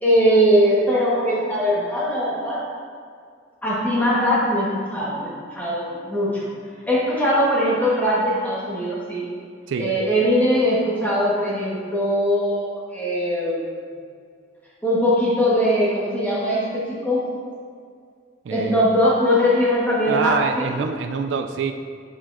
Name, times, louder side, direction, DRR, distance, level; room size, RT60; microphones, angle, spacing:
voice 1, 0.0-2.7 3.6-6.5 6.9-9.2 9.8-13.7 14.8-17.3 18.5-20.7, equal, 10° left, -7 dB, 1.3 m, -21 dB
voice 2, 18.4-18.8 20.1-21.7, right 5 dB, 80° right, 7 dB, 0.3 m, -25 dB
7.2 x 5.8 x 2.6 m, 2.2 s
head